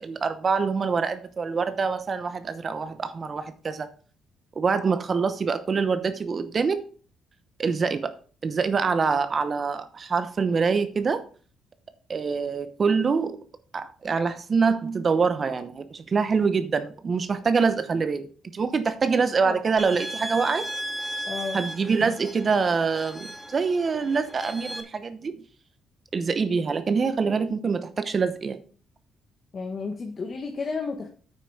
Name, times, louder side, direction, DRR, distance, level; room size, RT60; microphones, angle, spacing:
voice 1, 0.0-3.9 4.6-6.8 7.6-8.1 8.4-11.2 12.1-13.4 13.7-20.7 21.5-25.4 26.1-28.6, right 5 dB, 40° right, 0.9 m, -25 dB
sound 1, 19.8-24.8, right 1 dB, 5° left, 1.9 m, -36 dB
voice 2, 21.3-21.6 29.5-31.1, left 4 dB, 45° left, 1.5 m, -32 dB
9.2 x 5.9 x 4.9 m
cardioid pair, 90°, 0 cm